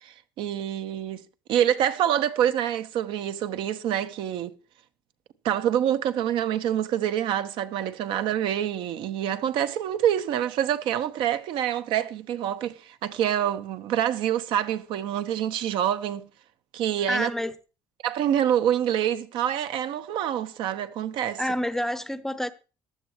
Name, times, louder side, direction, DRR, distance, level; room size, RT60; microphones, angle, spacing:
voice 1, 0.0-4.5 5.4-16.3 16.7-17.3 18.0-21.4, right 10 dB, 75° right, 1.1 m, -26 dB
voice 2, 17.1-17.5 21.4-22.5, equal, 5° left, 0.7 m, -28 dB
15.0 x 11.5 x 3.1 m
cardioid pair, 145°, 9 cm